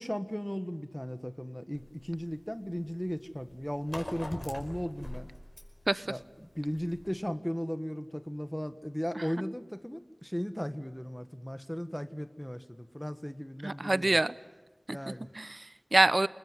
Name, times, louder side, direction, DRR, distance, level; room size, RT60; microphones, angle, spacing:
voice 1, 0.0-5.3 6.1-14.1 14.9-15.3, equal, 5° left, 10 dB, 1.4 m, -36 dB
sound 1, 1.7-7.1, left 1 dB, 45° left, 5.2 m, -44 dB
voice 2, 13.6-14.3 14.9-16.3, right 2 dB, 50° right, 17 dB, 0.8 m, -27 dB
29.0 x 20.5 x 9.7 m, 1.2 s
wide cardioid pair, 40°, 0 cm